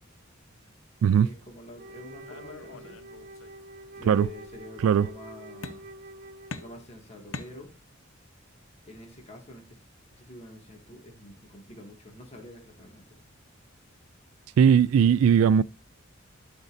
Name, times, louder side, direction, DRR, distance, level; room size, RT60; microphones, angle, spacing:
voice 1, 1.2-3.0 3.9-5.9 6.6-7.7 8.8-9.8 10.2-13.2, left 1 dB, 30° left, 1.9 m, -46 dB
Wind instrument woodwind instrument, 1.7-6.9, right 1 dB, 45° right, 0.6 m, -47 dB
sound 1, 2.3-3.6 4.0-4.7 5.6-6.1 6.5-8.1, left 3 dB, 75° left, 0.8 m, -43 dB
voice 2, 14.6-15.6, right 7 dB, 90° right, 0.3 m, -19 dB
12.0 x 5.3 x 2.6 m
head